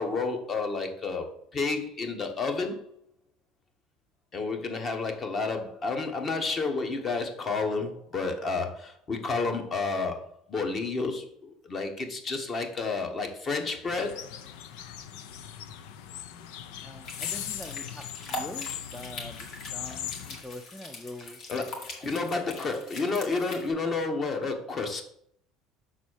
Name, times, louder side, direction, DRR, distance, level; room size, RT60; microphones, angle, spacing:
voice 1, 0.0-2.9 4.3-14.4 21.5-25.0, left 3 dB, 30° left, 5 dB, 1.2 m, -31 dB
sound 1, 13.9-20.4, left 10 dB, 80° left, 0.6 m, -39 dB
voice 2, 16.8-21.4 22.0-22.8, left 1 dB, 5° left, 5 dB, 0.5 m, -44 dB
sound 2, 17.0-23.7, left 2 dB, 50° left, 2.1 m, -42 dB
6.3 x 4.1 x 6.3 m, 0.67 s
cardioid pair, 135°, 0 cm